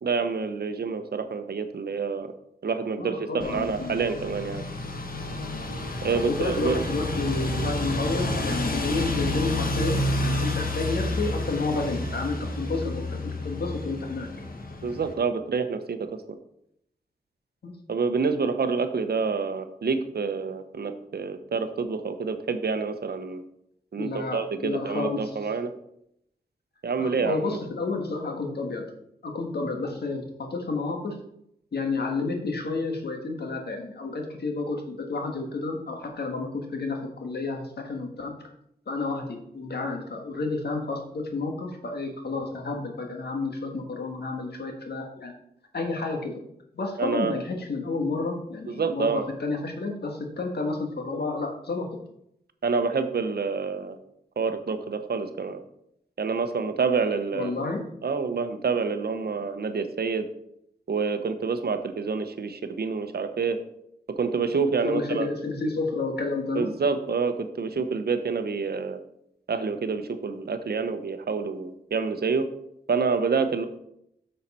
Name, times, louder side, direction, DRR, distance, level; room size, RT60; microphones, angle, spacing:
voice 1, 0.0-2.3 2.6-4.6 6.0-6.8 14.8-16.0 17.9-23.4 23.9-25.7 26.8-27.4 47.0-47.4 48.7-49.3 52.6-54.0 54.4-55.6 56.2-57.5 58.0-60.3 60.9-63.6 64.2-65.3 66.5-69.0 69.5-72.5 72.9-73.6, right 5 dB, 75° right, 9 dB, 0.8 m, -27 dB
voice 2, 3.0-4.0 6.0-14.3 17.6-17.8 24.0-25.3 27.0-28.9 29.2-31.2 31.7-38.3 38.9-45.3 45.7-46.4 46.7-51.9 57.3-57.9 64.8-66.7, left 3 dB, 80° left, 3 dB, 1.5 m, -30 dB
sound 1, 3.4-15.1, left 1 dB, 60° left, 1.2 m, -30 dB
7.1 x 6.5 x 4.2 m, 0.75 s
wide cardioid pair, 75°, 16 cm